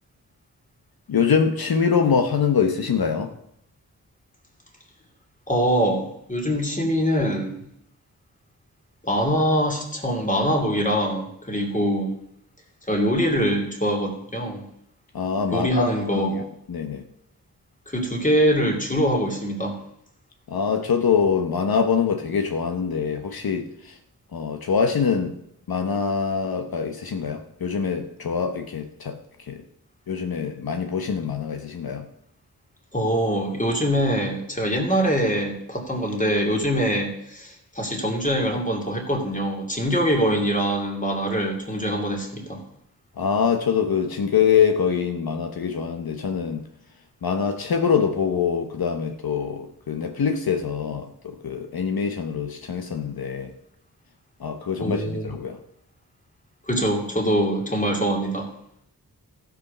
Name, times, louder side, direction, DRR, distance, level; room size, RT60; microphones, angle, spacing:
voice 1, 1.1-3.3 15.1-16.4 16.7-17.0 20.5-24.0 24.3-25.3 25.7-29.6 30.1-32.0 43.2-46.6 47.2-53.5 54.4-55.6, left 6 dB, 75° left, 5 dB, 1.1 m, -24 dB
voice 2, 5.5-7.6 9.0-12.1 12.9-14.7 15.5-16.5 17.9-19.8 32.9-42.6 54.8-55.3 56.7-58.5, equal, 20° left, 1 dB, 2.7 m, -23 dB
15.5 x 5.2 x 6.6 m, 0.73 s
wide cardioid pair, 90°, 37 cm